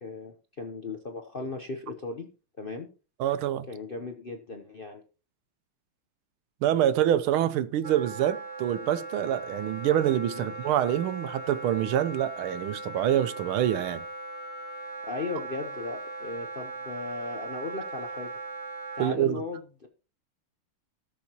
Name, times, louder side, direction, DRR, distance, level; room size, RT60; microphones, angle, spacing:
voice 1, 0.0-2.3 2.6-2.9 3.7-5.0 10.3-10.5 15.0-18.3 18.9-19.9, left 3 dB, 50° left, 0.6 m, -37 dB
voice 2, 3.2-3.7 6.6-14.0 19.0-19.4, right 11 dB, 90° right, 1.6 m, -26 dB
Wind instrument woodwind instrument, 7.8-19.1, right 2 dB, 50° right, 0.9 m, -39 dB
18.0 x 7.0 x 2.9 m
omnidirectional pair, 2.3 m